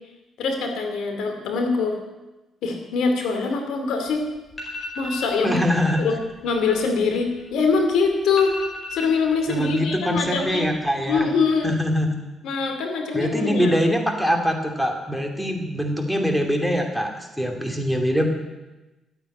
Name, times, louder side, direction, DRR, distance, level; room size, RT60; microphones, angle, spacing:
voice 1, 0.4-2.0 2.6-4.2 5.0-5.6 6.0-6.2 6.4-8.5 8.9-10.7 11.1-11.7 12.4-13.8, left 4 dB, 80° left, 4 dB, 2.7 m, -23 dB
sound 1, 4.1-4.2 4.5-5.3 5.7-6.0 6.3-7.8 8.1-8.2 8.4-9.8 10.1-10.7 11.0-11.5, left 2 dB, 25° left, 5.0 m, -36 dB
voice 2, 5.4-6.0 9.5-11.3 11.6-12.2 13.1-18.3, equal, ahead, 3 dB, 2.5 m, -23 dB
13.0 x 8.8 x 9.3 m, 1.1 s
cardioid pair, 90°, 0 cm